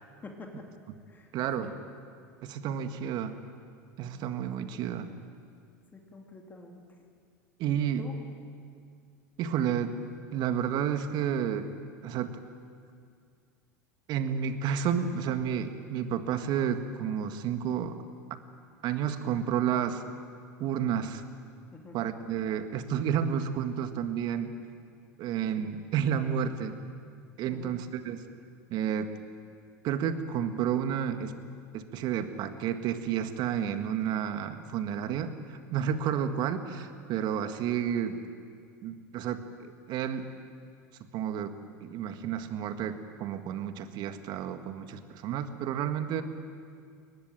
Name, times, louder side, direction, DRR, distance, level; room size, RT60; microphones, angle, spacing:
voice 1, 0.2-0.7 1.1-1.3 1.6-1.8 5.9-7.0 8.0-8.2 21.7-22.0 27.5-27.8, left 3 dB, 20° left, 2 dB, 2.8 m, -46 dB
voice 2, 1.3-1.7 2.4-3.4 4.0-5.1 7.6-8.0 9.4-10.0 10.3-11.7 12.0-12.4 14.1-18.0 18.8-20.0 20.6-21.2 21.9-24.5 25.2-26.8 27.4-28.2 28.7-29.1 29.8-31.3 31.7-38.2 38.8-40.3 41.1-41.5 41.8-46.2, right 8 dB, 50° right, 8 dB, 1.8 m, -31 dB
23.0 x 19.5 x 9.0 m, 2.2 s
hypercardioid pair, 85°, 9 cm